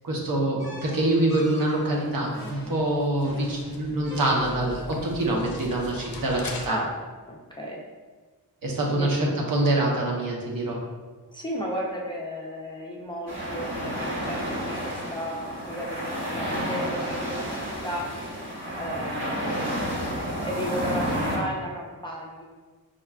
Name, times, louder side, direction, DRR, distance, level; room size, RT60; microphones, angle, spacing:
voice 1, 0.0-6.8 8.6-10.8, right 1 dB, 65° right, -2 dB, 0.8 m, -25 dB
sound 1, 0.6-4.9, left 1 dB, 10° right, 1.1 m, -43 dB
sound 2, 1.2-6.7, left 2 dB, 65° left, 0.5 m, -42 dB
voice 2, 7.3-7.8 8.9-9.1 11.3-18.1 18.8-20.0 20.4-22.4, equal, 15° left, -4 dB, 0.4 m, -34 dB
sound 3, 13.3-21.4, equal, 35° right, 1.1 m, -30 dB
5.1 x 2.3 x 2.3 m, 1.4 s
wide cardioid pair, 105°, 37 cm